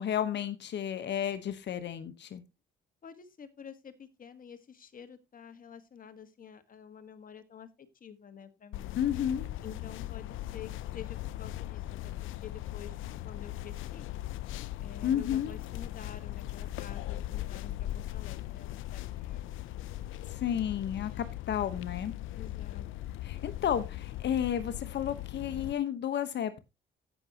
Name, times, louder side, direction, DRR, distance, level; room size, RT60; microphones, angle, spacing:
voice 1, 0.0-2.4 8.9-9.5 15.0-15.5 20.3-22.1 23.2-26.6, left 9 dB, 60° left, 12 dB, 1.1 m, -32 dB
voice 2, 3.0-9.0 9.6-14.1 14.8-19.5 22.3-22.8, left 7 dB, 45° left, 9 dB, 1.5 m, -49 dB
sound 1, 8.7-25.7, left 14 dB, 85° left, 0.5 m, -39 dB
16.5 x 6.2 x 2.9 m, 0.23 s
cardioid pair, 90°, 20 cm